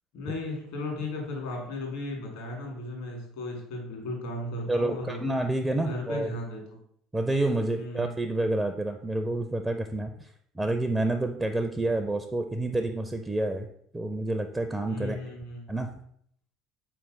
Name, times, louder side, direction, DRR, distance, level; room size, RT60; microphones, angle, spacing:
voice 1, 0.1-5.2 5.8-6.8 7.8-8.1 14.9-15.6, left 2 dB, 65° left, -1 dB, 1.6 m, -35 dB
voice 2, 4.7-6.3 7.1-10.3 10.6-13.7 13.9-15.2 15.7-15.9, right 2 dB, 10° right, 6 dB, 0.4 m, -28 dB
4.3 x 3.2 x 3.8 m, 0.67 s
figure-of-eight pair, 60°, 0 cm